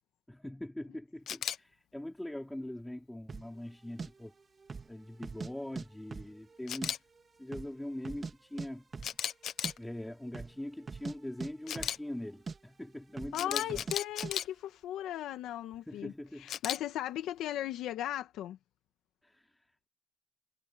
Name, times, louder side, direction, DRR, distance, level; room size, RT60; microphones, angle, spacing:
voice 1, 0.3-4.3 4.9-7.0 7.4-8.9 9.8-13.9 15.9-16.5 19.2-19.5, left 1 dB, 5° left, 4.8 m, -42 dB
Camera, 1.3-1.6 6.7-7.0 9.0-9.8 11.7-12.0 13.3-14.5 16.5-16.8, left 10 dB, 70° left, 1.2 m, -35 dB
sound 1, 3.3-3.5 4.0-4.1 4.6-4.9 5.2-5.9 6.1-6.9 7.2-7.3 7.5-8.3 8.6-8.7 8.9-9.2 9.4-9.7 10.3-10.6 10.8-12.2 12.5-12.6 13.1-13.4 13.7-14.0 14.2-14.3, right 4 dB, 35° right, 2.4 m, -41 dB
voice 2, 13.3-18.6, left 12 dB, 85° left, 1.7 m, -37 dB
cardioid pair, 90°, 0 cm